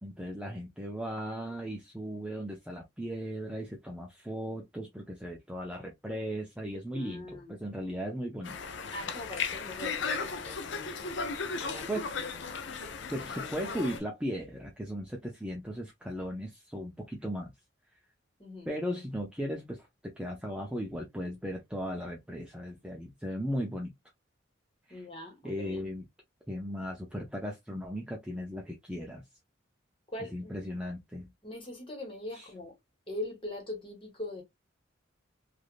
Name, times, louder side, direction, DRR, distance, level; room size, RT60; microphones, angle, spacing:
voice 1, 0.0-8.6 11.9-12.1 13.1-17.5 18.7-23.9 24.9-25.0 25.4-26.0 26.5-29.2 30.3-31.3 32.3-32.5, equal, 5° right, 0.5 m, -37 dB
voice 2, 6.9-7.5 8.9-11.2 11.6-11.9 12.2-12.3 13.1-13.5 18.4-18.7 24.9-25.8 30.1-30.5 31.4-32.7 33.1-34.4, left 1 dB, 30° left, 1.4 m, -42 dB
Conversation, 8.4-14.0, left 5 dB, 65° left, 0.5 m, -36 dB
3.3 x 2.5 x 2.4 m
head